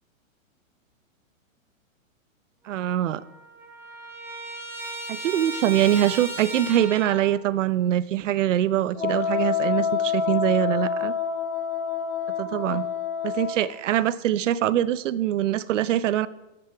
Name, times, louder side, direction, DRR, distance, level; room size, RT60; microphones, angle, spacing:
Trumpet, 2.7-2.8 3.0-7.4, right 2 dB, 5° right, 0.8 m, -36 dB
voice 1, 2.7-3.2 5.1-11.1 12.4-12.9 13.2-16.3, right 12 dB, 65° right, 18 dB, 0.7 m, -23 dB
Wind instrument woodwind instrument, 8.9-13.7, left 8 dB, 80° left, 4.6 m, -27 dB
14.0 x 7.0 x 4.6 m, 0.99 s
hypercardioid pair, 160°, 40 cm